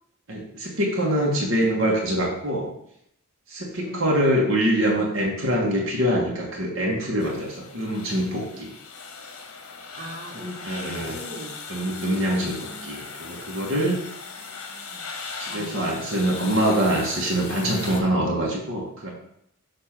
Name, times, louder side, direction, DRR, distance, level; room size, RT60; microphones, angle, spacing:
voice 1, 0.3-2.7 3.5-8.7 10.3-11.2 11.7-14.0 15.4-19.1, right 1 dB, 65° right, -2 dB, 1.4 m, -24 dB
sound 1, 7.2-18.0, left 5 dB, 80° left, 1.0 m, -39 dB
voice 2, 9.9-11.5 12.1-12.9 14.4-15.1 15.5-15.7, equal, 35° right, -3 dB, 1.5 m, -41 dB
6.8 x 2.9 x 5.8 m, 0.73 s
head